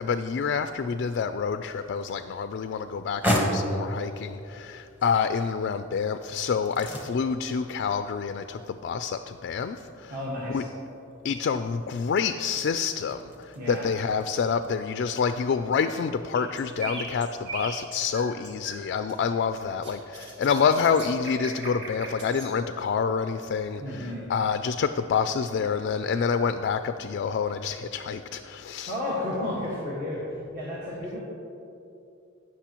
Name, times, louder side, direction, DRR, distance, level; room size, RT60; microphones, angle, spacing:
voice 1, 0.0-10.1 10.5-10.6 11.2-28.9, left 6 dB, 55° left, 9 dB, 0.3 m, -27 dB
sound 1, 1.5-14.7, equal, 10° right, 1.0 m, -36 dB
voice 2, 10.1-10.7 13.5-13.9 23.8-24.3 28.9-31.2, left 1 dB, 45° right, -6 dB, 1.6 m, -32 dB
sound 2, 16.3-18.8 19.1-22.5, right 2 dB, 60° right, 1.8 m, -39 dB
18.0 x 6.2 x 3.0 m, 2.7 s
head